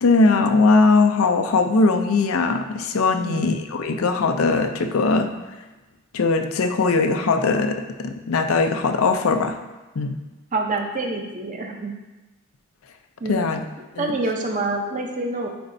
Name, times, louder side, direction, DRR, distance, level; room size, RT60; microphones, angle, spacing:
voice 1, 0.0-5.3 6.1-9.6 10.0-10.1 13.3-13.6 14.0-14.1, left 3 dB, 75° left, 6 dB, 0.5 m, -20 dB
voice 2, 3.2-3.5 10.5-11.9 13.2-13.5 14.0-15.5, right 2 dB, 35° right, 2 dB, 0.7 m, -26 dB
9.2 x 4.2 x 2.6 m, 1.1 s
head